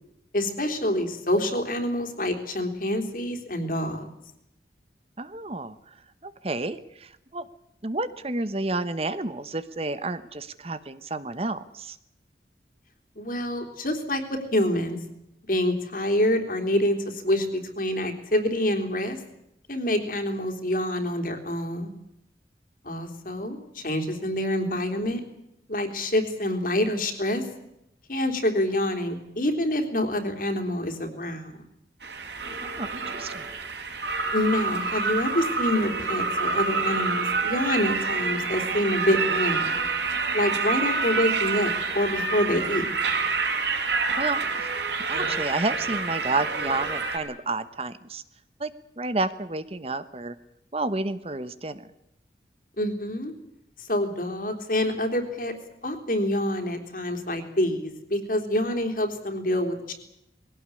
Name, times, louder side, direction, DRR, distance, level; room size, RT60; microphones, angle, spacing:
voice 1, 0.3-4.1 13.2-15.0 15.5-19.2 19.7-21.9 22.8-25.2 25.7-27.4 28.1-31.5 34.3-39.9 40.3-42.9 52.8-53.3 53.8-55.5 55.8-59.9, left 1 dB, 50° left, 5 dB, 3.5 m, -26 dB
voice 2, 5.2-5.9 6.2-7.5 7.8-12.0 32.8-33.5 44.2-44.7 45.1-48.2 48.6-48.7 49.0-50.3 50.7-51.9, right 2 dB, 35° right, 13 dB, 1.1 m, -30 dB
sound 1, 32.0-47.2, right 4 dB, 80° right, 5.1 m, -27 dB
22.0 x 17.5 x 9.9 m, 0.82 s
head